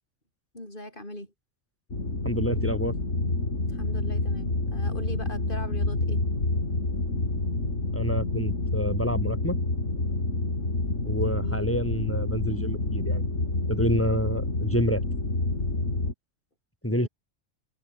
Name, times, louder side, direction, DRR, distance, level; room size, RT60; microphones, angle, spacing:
voice 1, 0.5-1.3 3.7-6.2 11.2-11.6 16.9-17.1, left 1 dB, 45° left, 8.0 m, -40 dB
industrial hums factory water treatment plant drone highcut, 1.9-16.1, left 2 dB, 85° left, 4.9 m, -28 dB
voice 2, 2.2-2.9 7.9-9.6 11.0-13.2 13.7-15.0 16.8-17.1, equal, 10° left, 4.5 m, -28 dB
omnidirectional pair, 1.3 m